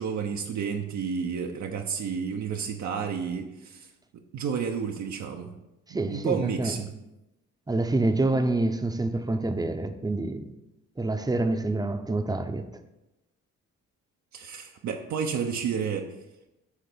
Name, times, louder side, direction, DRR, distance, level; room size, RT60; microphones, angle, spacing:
voice 1, 0.0-3.9 4.3-5.5 5.9-6.9 14.3-16.1, right 6 dB, 70° right, 0.9 m, -31 dB
voice 2, 5.9-6.8 7.7-10.5 11.0-12.7, right 2 dB, 15° right, 0.8 m, -27 dB
9.5 x 3.3 x 6.8 m
cardioid pair, 90°, 30 cm